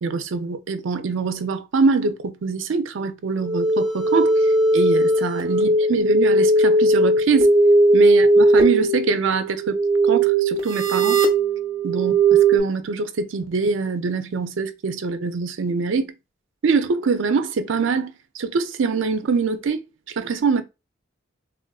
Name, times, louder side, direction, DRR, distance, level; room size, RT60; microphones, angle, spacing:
voice 1, 0.0-7.5 7.9-11.2 11.8-16.1 16.6-19.8 20.2-20.6, right 4 dB, 65° right, 0.4 m, -24 dB
sound 1, 3.4-12.6, right 2 dB, 25° right, 0.8 m, -18 dB
3.4 x 2.4 x 2.3 m
head